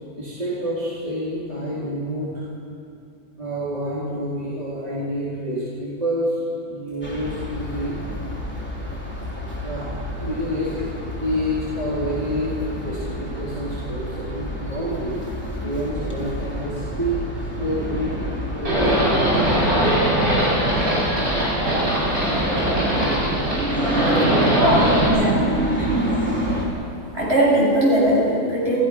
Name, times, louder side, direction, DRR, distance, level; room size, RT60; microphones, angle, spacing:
voice 1, 0.2-2.5 3.4-6.4 6.7-8.0 9.6-9.9 10.2-10.7 11.2-15.2 15.6-17.2 17.6-18.2 18.5-19.0, equal, 25° right, -9 dB, 4.1 m, -28 dB
sound 1, 7.0-26.7, right 1 dB, 5° left, 3.7 m, -28 dB
Livestock farm animals working animals, 18.6-25.1, right 1 dB, 70° right, 7.7 m, -20 dB
voice 2, 25.1-26.0 27.1-28.8, right 1 dB, 45° right, -5 dB, 7.2 m, -20 dB
28.5 x 15.5 x 6.1 m, 2.4 s
omnidirectional pair, 1.6 m